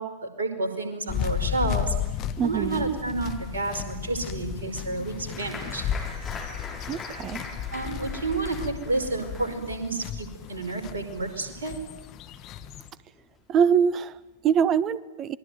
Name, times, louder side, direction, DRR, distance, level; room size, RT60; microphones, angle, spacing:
voice 1, 0.0-1.9 2.4-5.8 7.7-11.8, right 3 dB, 70° right, 6 dB, 4.9 m, -30 dB
sound 1, 1.1-12.9, left 9 dB, 35° left, 1.6 m, -34 dB
voice 2, 2.4-2.9 6.9-7.4 13.5-15.4, right 7 dB, 30° right, 18 dB, 1.1 m, -24 dB
Applause, 5.3-12.4 12.6-13.4 13.8-13.9 14.2-14.6, left 3 dB, 20° left, 6.8 m, -42 dB
27.0 x 21.5 x 9.4 m, 1.0 s
figure-of-eight pair, 90°, 0 cm